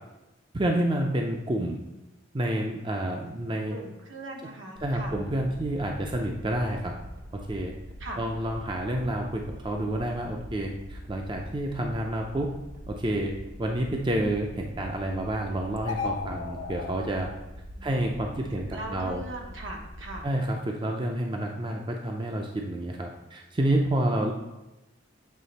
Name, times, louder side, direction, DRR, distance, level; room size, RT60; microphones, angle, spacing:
voice 1, 0.5-1.8 2.3-3.8 4.8-6.9 7.5-7.7 8.2-12.5 12.9-13.3 13.6-17.3 17.8-19.2 20.2-24.3, right 1 dB, 25° right, 2 dB, 0.4 m, -29 dB
voice 2, 3.7-5.2 8.0-8.2 17.7-20.3, right 1 dB, 80° right, 0 dB, 1.1 m, -40 dB
sound 1, 4.7-20.2, equal, 55° right, 0.7 m, -43 dB
sound 2, 15.8-17.0, left 5 dB, 65° left, 0.7 m, -33 dB
7.5 x 3.3 x 4.0 m, 1.0 s
head